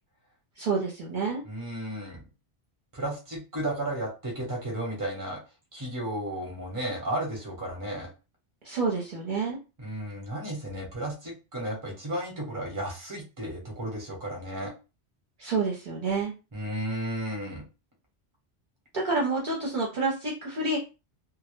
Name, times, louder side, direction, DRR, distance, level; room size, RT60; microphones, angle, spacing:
voice 1, 0.6-1.4 8.6-9.6 15.4-16.3 18.9-20.8, right 3 dB, 55° right, -3 dB, 0.7 m, -28 dB
voice 2, 1.4-2.2 2.9-5.4 5.7-8.1 9.8-14.7 16.5-17.6, right 1 dB, 20° right, -1 dB, 0.7 m, -33 dB
2.1 x 2.0 x 3.0 m, 0.29 s
omnidirectional pair, 1.1 m